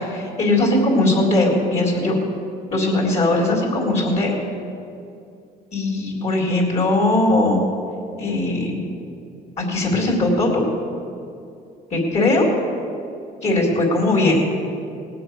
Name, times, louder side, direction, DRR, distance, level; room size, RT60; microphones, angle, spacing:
voice 1, 0.0-2.2 2.7-4.3 5.7-7.6 8.2-8.8 9.6-10.6 11.9-12.5 13.4-14.4, left 2 dB, 40° left, -3 dB, 3.8 m, -19 dB
19.0 x 7.7 x 6.4 m, 2.5 s
cardioid pair, 110°, 17 cm